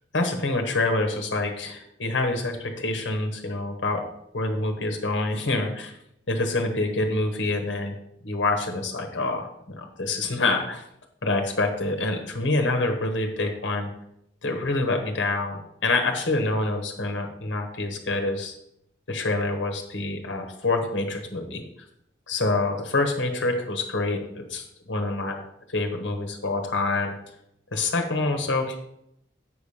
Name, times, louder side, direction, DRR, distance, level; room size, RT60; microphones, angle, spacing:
voice 1, 0.1-4.0 4.3-5.9 6.3-7.9 8.2-10.8 11.2-13.9 14.4-18.5 19.1-21.6 22.3-25.4 25.7-27.1 27.7-28.8, left 2 dB, 90° left, 4 dB, 1.2 m, -26 dB
7.8 x 5.0 x 5.6 m, 0.76 s
head